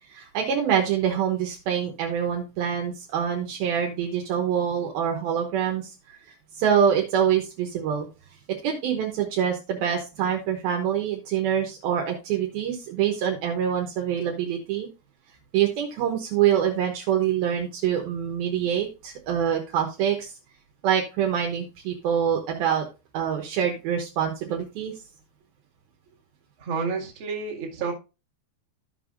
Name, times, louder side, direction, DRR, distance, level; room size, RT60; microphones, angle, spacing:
voice 1, 0.1-5.9 6.5-8.1 8.6-14.9 15.5-20.3 20.8-22.9 23.1-24.9, right 8 dB, 70° right, 2.7 m, -25 dB
voice 2, 26.6-27.9, right 5 dB, 40° right, 2.1 m, -30 dB
15.0 x 5.4 x 2.5 m
omnidirectional pair, 4.7 m